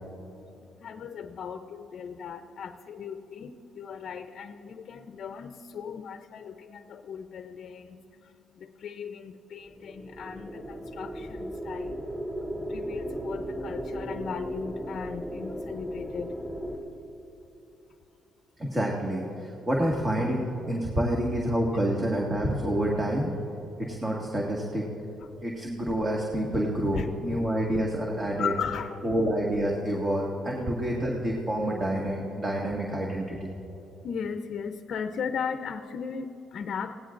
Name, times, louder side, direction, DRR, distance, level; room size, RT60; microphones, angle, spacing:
voice 1, 0.8-8.0 8.6-12.0 12.7-16.3 25.1-25.3 26.9-27.1 27.3-27.4 28.4-29.0 34.0-36.9, left 6 dB, 60° left, 7 dB, 0.6 m, -37 dB
sound 1, 9.7-16.8, equal, 10° right, 2.4 m, -36 dB
voice 2, 18.6-23.3 23.8-24.9 25.4-28.5 29.0-33.5, right 1 dB, 25° right, -2 dB, 1.9 m, -28 dB
25.5 x 17.5 x 2.6 m, 3.0 s
cardioid pair, 90°, 0 cm